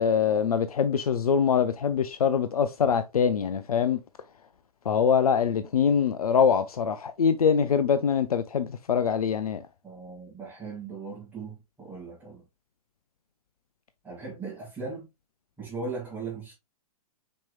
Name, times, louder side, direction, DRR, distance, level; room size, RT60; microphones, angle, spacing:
voice 1, 0.0-4.0 4.9-9.6, left 7 dB, 75° left, 0.5 m, -24 dB
voice 2, 9.8-12.4 14.0-15.1 15.6-16.5, right 4 dB, 10° right, 2.2 m, -38 dB
5.3 x 4.4 x 2.2 m
figure-of-eight pair, 110°, 19 cm